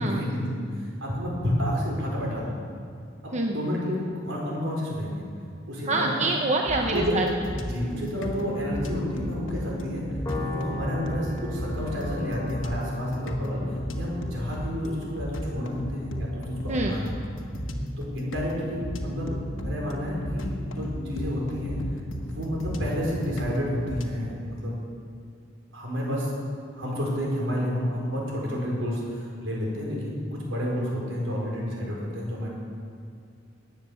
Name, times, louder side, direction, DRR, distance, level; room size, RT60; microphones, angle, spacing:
voice 1, 0.0-2.6 3.2-5.2 5.7-6.2 6.8-7.2 7.5-10.0 10.4-13.6 13.9-17.1 18.0-21.8 22.2-24.8 25.7-26.3 26.7-32.5, equal, 75° right, -3 dB, 4.8 m, -30 dB
voice 2, 5.9-7.2 16.7-17.0, right 2 dB, 35° right, 1 dB, 0.9 m, -26 dB
sound 1, 6.7-24.1, equal, 80° left, 1.4 m, -34 dB
Piano, 10.3-16.8, left 2 dB, 15° left, 2.3 m, -40 dB
18.5 x 9.1 x 7.1 m, 2.4 s
head